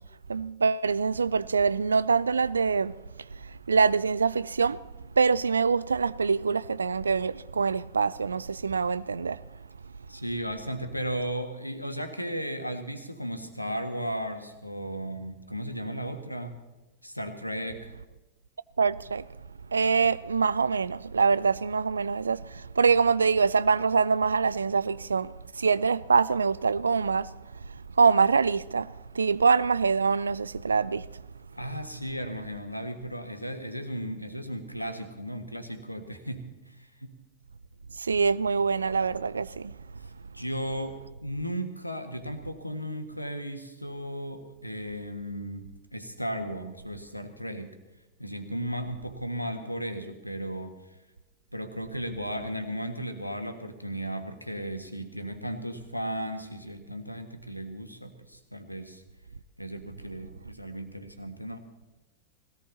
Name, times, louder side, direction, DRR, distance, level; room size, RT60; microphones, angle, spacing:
voice 1, 0.3-2.9 3.4-4.8 5.2-9.4 18.8-19.3 19.7-27.3 28.0-31.1 37.9-39.7, right 5 dB, 75° right, 0.4 m, -24 dB
voice 2, 10.1-16.5 17.0-18.0 31.5-37.1 40.3-47.7 48.2-50.8 51.5-59.0 59.6-61.6, equal, 90° left, 1.6 m, -35 dB
19.5 x 17.5 x 4.1 m
figure-of-eight pair, 90°, 0 cm